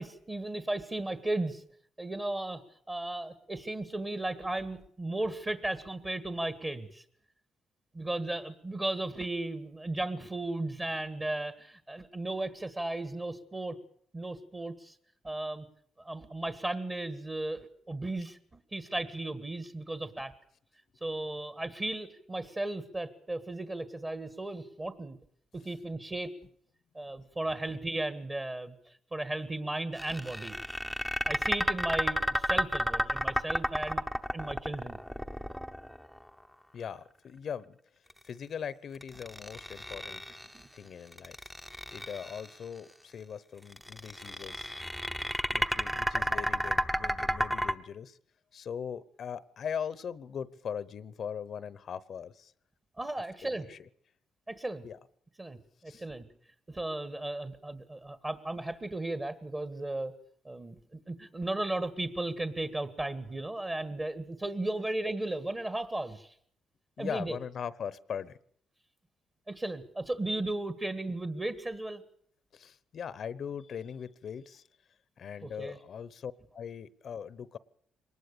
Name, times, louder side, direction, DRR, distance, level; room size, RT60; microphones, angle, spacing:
voice 1, 0.0-1.6 2.0-2.6 2.9-7.0 7.9-13.8 14.1-15.0 15.2-15.7 16.0-20.3 21.0-25.2 25.6-26.3 27.0-30.6 31.2-34.0 34.3-35.0 40.5-40.7 53.0-53.7 54.5-54.9 55.4-56.3 56.7-60.1 60.5-66.3 67.0-67.4 69.5-72.0 75.4-75.8, right 2 dB, 25° right, 11 dB, 1.7 m, -35 dB
sound 1, 30.0-36.2 39.0-40.6 41.1-42.5 43.7-47.7, equal, ahead, 0.9 m, -31 dB
voice 2, 36.7-37.8 38.2-40.2 40.7-41.4 41.9-44.7 45.3-48.2 48.5-52.5 53.4-53.9 54.8-55.0 55.9-56.0 67.0-68.4 72.5-74.6 75.2-77.6, left 7 dB, 55° left, 18 dB, 0.9 m, -40 dB
23.0 x 19.5 x 6.8 m, 0.64 s
cardioid pair, 90°, 0 cm